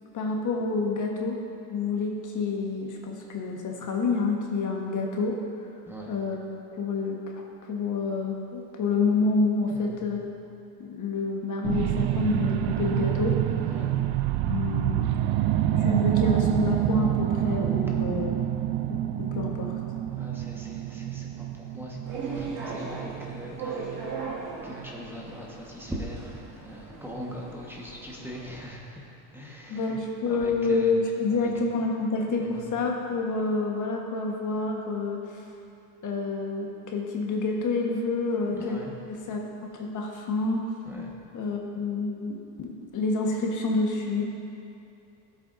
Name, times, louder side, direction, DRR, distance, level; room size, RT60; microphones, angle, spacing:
voice 1, 0.1-1.4 1.7-5.4 6.1-6.4 6.8-10.3 10.8-13.4 14.4-15.1 15.8-18.3 19.2-19.8 24.1-24.2 29.7-35.4 36.0-38.8 39.3-39.4 39.7-40.7 41.3-44.2, left 3 dB, 35° left, 0 dB, 1.4 m, -28 dB
voice 2, 5.9-6.2 9.7-10.0 13.7-13.9 20.1-24.2 24.6-30.0 30.2-30.9 31.3-31.5 32.4-32.6 38.5-39.0 40.8-41.1, equal, 5° right, -3 dB, 1.4 m, -41 dB
sound 1, 11.6-24.3 24.8-24.9, right 12 dB, 50° right, 0.6 m, -27 dB
sound 2, 22.0-28.6, right 4 dB, 80° right, 2.4 m, -38 dB
16.0 x 8.1 x 2.7 m, 2.6 s
supercardioid pair, 110°, 50 cm